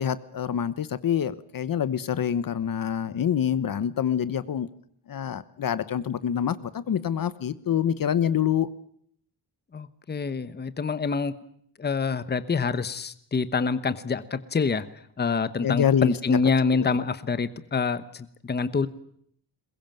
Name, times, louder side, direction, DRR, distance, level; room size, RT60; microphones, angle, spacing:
voice 1, 0.0-4.7 5.1-8.7 15.6-16.2 16.9-17.0, left 9 dB, 50° left, 15 dB, 1.1 m, -26 dB
voice 2, 9.7-11.3 11.8-14.9 15.2-18.9, left 5 dB, 25° left, 13 dB, 1.1 m, -26 dB
22.0 x 21.5 x 9.0 m, 0.66 s
wide cardioid pair, 180°, 42 cm